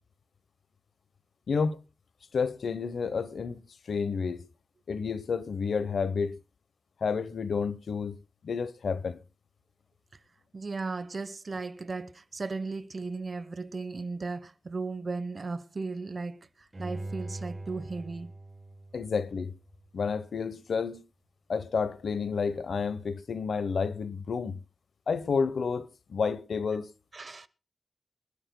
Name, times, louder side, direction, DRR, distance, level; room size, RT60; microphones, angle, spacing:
voice 1, 1.5-1.8 2.3-3.6 3.9-4.5 4.9-6.4 7.0-8.2 8.4-9.2 18.9-19.5 19.9-21.0 21.5-24.6 25.1-26.9, left 5 dB, 85° left, 0.9 m, -30 dB
voice 2, 10.5-18.3 27.1-27.5, right 3 dB, 50° right, 0.9 m, -36 dB
Bowed string instrument, 16.7-19.8 20.3-20.4, right 2 dB, 25° right, 6.5 m, -42 dB
24.5 x 12.0 x 2.2 m
wide cardioid pair, 80°, 0 cm